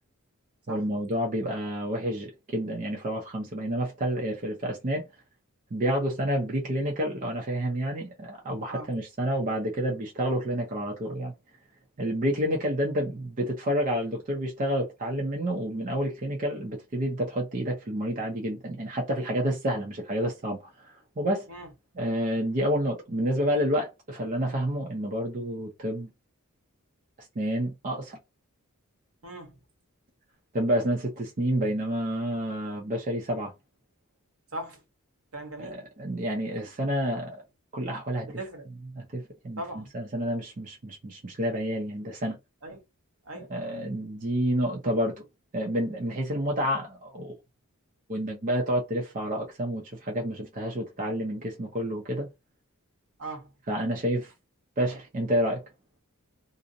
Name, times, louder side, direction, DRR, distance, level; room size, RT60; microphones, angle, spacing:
voice 1, 0.7-5.0 5.7-11.3 12.0-21.5 22.0-26.1 27.2-28.2 30.5-33.5 35.6-37.4 37.7-38.3 38.9-42.4 43.3-45.2 45.5-47.4 48.1-52.3 53.7-54.3 54.8-55.6, equal, 40° right, 0.6 m, -29 dB
voice 2, 29.2-29.6 34.5-34.8 35.3-35.8 38.3-38.6 39.6-39.9 42.6-42.8 43.2-43.5 53.2-53.5, right 2 dB, 70° right, 1.0 m, -39 dB
2.5 x 2.0 x 2.6 m
head